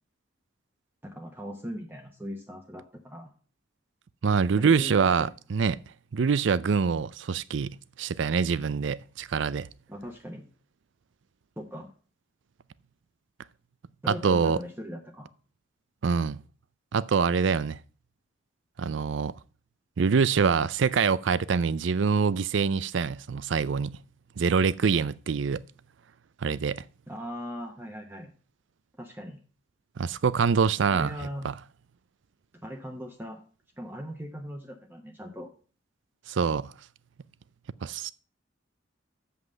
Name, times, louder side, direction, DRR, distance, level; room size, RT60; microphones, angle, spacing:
voice 1, 1.0-3.3 4.5-5.3 9.9-10.5 11.6-11.9 14.0-15.3 27.1-28.3 29.0-29.4 30.9-31.5 32.6-33.4 33.8-35.5, equal, 10° right, 0.9 m, -39 dB
voice 2, 4.2-5.8 6.1-9.7 14.1-14.6 16.0-16.4 16.9-17.8 18.8-19.3 20.0-24.0 24.4-25.6 26.4-26.8 30.0-31.1 31.4-31.5 36.3-36.7 37.8-38.1, right 5 dB, 65° right, 0.4 m, -25 dB
8.0 x 5.5 x 7.4 m
head